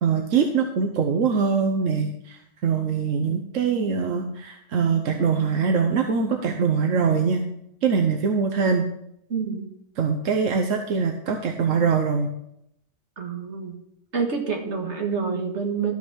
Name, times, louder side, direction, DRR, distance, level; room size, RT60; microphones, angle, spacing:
voice 1, 0.0-7.4 7.8-8.9 10.0-12.3, right 5 dB, 85° right, 4 dB, 1.2 m, -23 dB
voice 2, 9.3-9.7 13.2-13.8 14.1-15.9, right 5 dB, 65° right, 2 dB, 2.0 m, -27 dB
13.0 x 5.8 x 6.2 m, 0.77 s
omnidirectional pair, 1.3 m